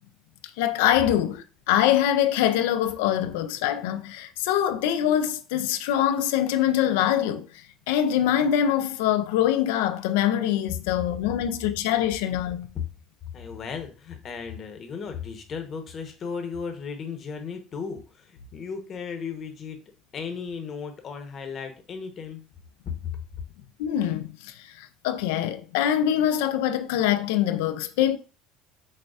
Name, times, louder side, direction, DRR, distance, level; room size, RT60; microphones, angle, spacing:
voice 1, 0.6-12.7 23.8-28.2, left 11 dB, 85° left, 0.3 m, -24 dB
voice 2, 13.3-19.8 20.1-22.4 22.8-23.1, left 6 dB, 40° left, 0.8 m, -35 dB
6.3 x 2.3 x 2.4 m
supercardioid pair, 100°, 0 cm